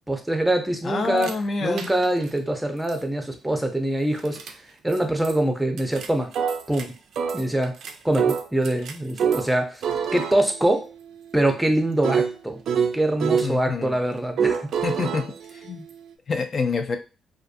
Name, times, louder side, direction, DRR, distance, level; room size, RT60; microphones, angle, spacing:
voice 1, 0.1-1.4 1.6-4.4 4.8-6.3 6.7-6.9 7.3-7.7 8.0-9.8 10.1-10.9 11.3-12.6 12.9-14.7, right 1 dB, 5° right, 5 dB, 0.6 m, -24 dB
voice 2, 0.8-1.9 13.4-14.0 14.8-15.2 15.5-15.9 16.3-17.0, left 4 dB, 45° left, 7 dB, 0.4 m, -27 dB
sound 1, 1.2-1.3 1.8-2.3 2.9-3.0 4.2-4.5 4.9-5.0 5.2-5.4 5.8-6.8 7.2-9.5 9.8-13.5 14.4-16.1, right 7 dB, 70° right, 0.3 m, -27 dB
2.4 x 2.3 x 2.5 m, 0.32 s
cardioid pair, 90°, 0 cm